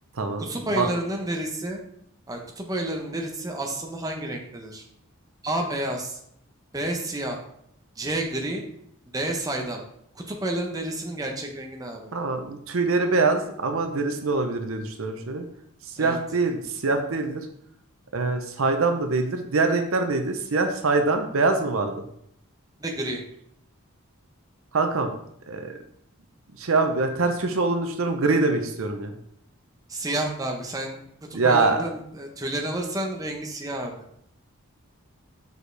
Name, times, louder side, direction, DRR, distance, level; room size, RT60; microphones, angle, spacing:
voice 1, 0.4-1.8 2.3-4.8 5.4-6.2 6.7-7.4 8.0-8.6 9.1-9.8 10.1-12.1 16.0-16.2 22.8-23.2 29.9-31.0 31.3-33.9, right 1 dB, 15° right, 1 dB, 0.8 m, -30 dB
voice 2, 12.1-15.4 16.0-17.5 18.1-22.0 24.7-25.1 25.5-25.8 26.6-29.1 31.3-31.9, right 3 dB, 70° right, 6 dB, 0.7 m, -24 dB
6.3 x 4.9 x 3.3 m, 0.71 s
head